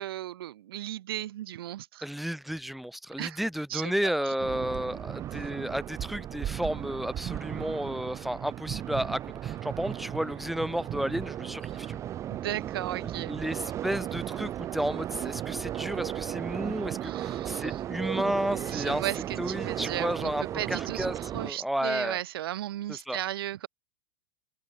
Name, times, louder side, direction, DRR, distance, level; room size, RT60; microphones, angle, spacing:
voice 1, 0.0-2.0 3.2-3.4 3.7-3.9 4.3-4.4 12.3-13.3 17.0-17.8 18.7-23.7, right 13 dB, 85° right, 0.7 m, -35 dB
voice 2, 2.0-12.0 13.3-19.0 19.4-22.2 22.9-23.2, equal, ahead, 1.0 m, -32 dB
sound 1, 4.4-21.5, right 11 dB, 25° right, 1.9 m, -35 dB
open air
supercardioid pair, 155°, 12 cm